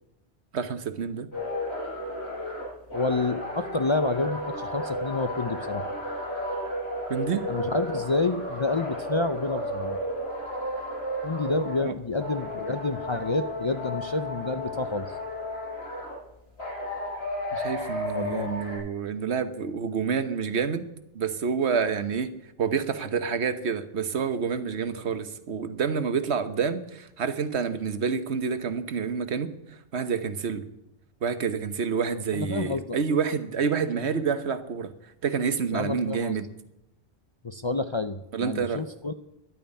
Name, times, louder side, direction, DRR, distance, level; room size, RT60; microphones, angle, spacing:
voice 1, 0.5-1.3 7.1-7.5 11.8-11.9 17.5-20.9 21.1-22.3 22.6-29.5 29.9-30.7 31.2-34.9 35.2-36.5 38.3-38.8, right 6 dB, 80° right, 10 dB, 1.3 m, -28 dB
sound 1, 1.3-11.9 12.2-16.2 16.6-18.8, left 1 dB, 75° left, 8.4 m, -33 dB
voice 2, 2.9-5.9 7.5-10.0 11.2-15.1 18.1-18.6 32.3-33.0 35.7-36.4 37.4-39.1, left 3 dB, 35° left, 9 dB, 0.5 m, -29 dB
11.0 x 9.1 x 9.8 m, 0.84 s
omnidirectional pair, 1.1 m